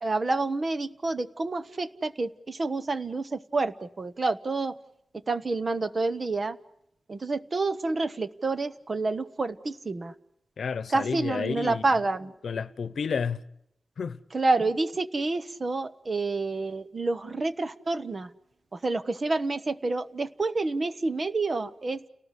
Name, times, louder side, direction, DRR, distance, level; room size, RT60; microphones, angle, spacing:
voice 1, 0.0-4.8 5.3-6.6 7.1-10.1 10.9-12.3 14.3-18.3 18.7-22.0, right 3 dB, 35° right, 1.0 m, -28 dB
voice 2, 10.6-11.9 12.4-13.4 14.0-14.2, left 6 dB, 65° left, 1.0 m, -31 dB
30.0 x 18.5 x 8.3 m
wide cardioid pair, 170°, 0 cm